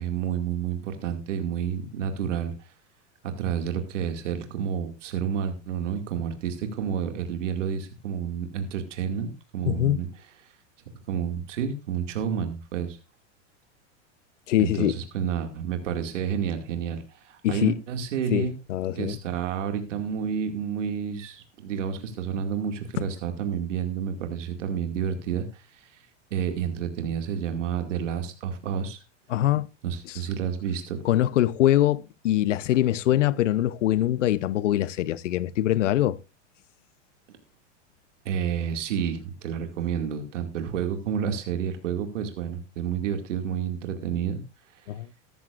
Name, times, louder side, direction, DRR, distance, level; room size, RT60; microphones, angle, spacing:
voice 1, 0.0-2.7 3.2-10.2 11.1-13.0 14.6-18.5 18.9-26.0 26.3-29.0 29.8-31.0 38.2-44.4 44.7-44.9, right 8 dB, 85° right, 2.3 m, -30 dB
voice 2, 9.6-10.0 14.5-14.9 17.4-17.7 18.3-19.2 23.0-23.1 29.3-29.7 31.0-36.2 44.9-45.1, left 13 dB, 90° left, 0.8 m, -23 dB
14.0 x 13.5 x 2.5 m
supercardioid pair, 125°, 36 cm